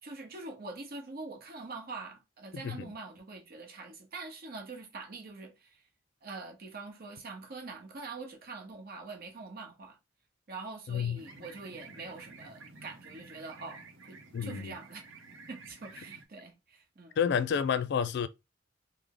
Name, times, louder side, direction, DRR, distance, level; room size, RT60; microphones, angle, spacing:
voice 1, 0.0-5.8 6.2-10.0 10.5-15.1 15.5-17.2, right 3 dB, 55° right, 0.9 m, -44 dB
voice 2, 10.9-11.2 14.3-14.7 17.2-18.3, left 7 dB, 60° left, 0.3 m, -29 dB
sound 1, 11.2-16.3, right 4 dB, 90° right, 0.7 m, -51 dB
3.2 x 2.0 x 3.7 m
head